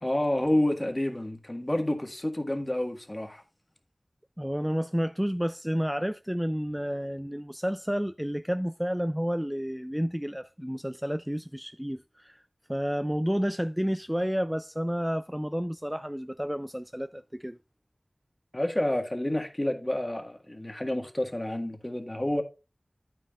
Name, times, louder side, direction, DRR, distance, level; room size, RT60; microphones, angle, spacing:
voice 1, 0.0-3.4 18.5-22.4, left 1 dB, 30° left, 1.6 m, -29 dB
voice 2, 4.4-12.4 12.7-17.6, equal, 5° right, 0.3 m, -30 dB
9.6 x 9.2 x 2.4 m
wide cardioid pair, 45°, 0 cm